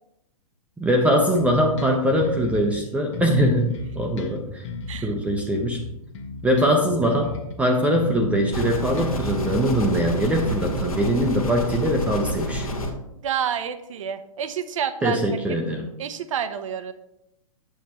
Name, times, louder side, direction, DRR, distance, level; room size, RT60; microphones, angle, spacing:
voice 1, 0.8-4.6 5.0-5.8 6.4-12.7 15.0-15.9, equal, 5° right, 2 dB, 0.8 m, -22 dB
Bass guitar, 1.3-2.8 3.1-7.6 7.9-10.9, left 4 dB, 55° left, 1.4 m, -35 dB
sound 1, 8.5-12.9, equal, 80° left, 1.4 m, -28 dB
voice 2, 13.2-15.4 16.0-16.9, right 8 dB, 65° right, 11 dB, 0.8 m, -29 dB
8.3 x 7.0 x 3.1 m, 0.86 s
hypercardioid pair, 120°, 18 cm